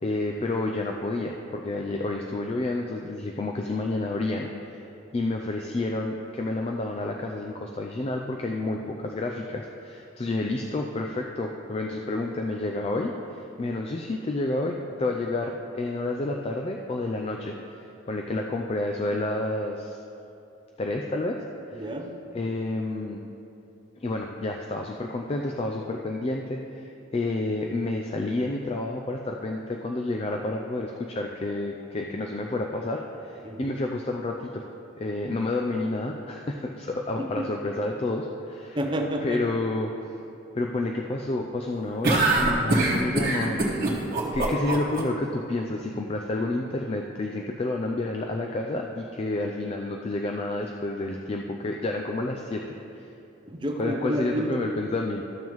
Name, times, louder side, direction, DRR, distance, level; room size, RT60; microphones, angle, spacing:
voice 1, 0.0-4.8 5.1-17.8 18.1-20.0 20.8-21.4 21.7-21.9 22.3-23.2 24.0-34.6 34.9-38.8 39.2-39.9 40.5-43.6 43.9-44.0 44.3-53.1 53.8-55.2, left 2 dB, 30° left, 2 dB, 0.3 m, -30 dB
voice 2, 21.7-22.5 33.4-33.8 37.2-37.5 38.7-39.4 53.5-54.6, equal, 25° right, 3 dB, 0.6 m, -30 dB
sound 1, 42.0-45.0, right 2 dB, 45° right, 1.3 m, -23 dB
13.0 x 7.3 x 3.1 m, 2.9 s
head